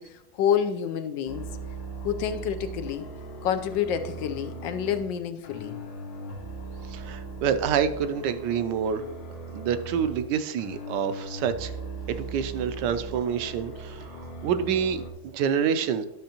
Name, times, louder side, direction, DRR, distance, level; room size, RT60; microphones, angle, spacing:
voice 1, 0.0-1.5 2.0-3.1 3.4-5.8, left 8 dB, 80° left, 9 dB, 1.3 m, -28 dB
sound 1, 1.2-5.1 5.4-10.3 10.6-15.1, right 2 dB, 65° left, 1.5 m, -39 dB
voice 2, 6.9-9.0 9.5-11.7 12.1-16.0, right 7 dB, 75° right, 11 dB, 1.2 m, -27 dB
11.5 x 6.2 x 2.9 m, 0.98 s
omnidirectional pair, 2.0 m